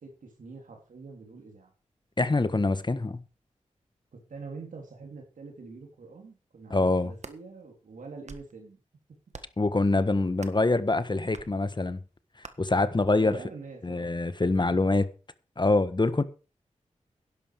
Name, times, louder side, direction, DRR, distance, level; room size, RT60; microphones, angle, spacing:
voice 1, 0.0-1.7 4.1-8.8 13.1-14.1, right 4 dB, 80° right, 3.5 m, -45 dB
voice 2, 2.2-3.2 6.7-7.1 9.6-12.0 12.6-13.4 13.8-15.1 15.6-16.2, left 2 dB, 35° left, 1.4 m, -25 dB
sound 1, 7.0-7.4 8.0-8.6 9.3-9.7 10.4-10.7 11.3-11.5 12.4-12.5, right 4 dB, 60° right, 1.6 m, -46 dB
11.5 x 11.0 x 5.1 m
cardioid pair, 40°, 13 cm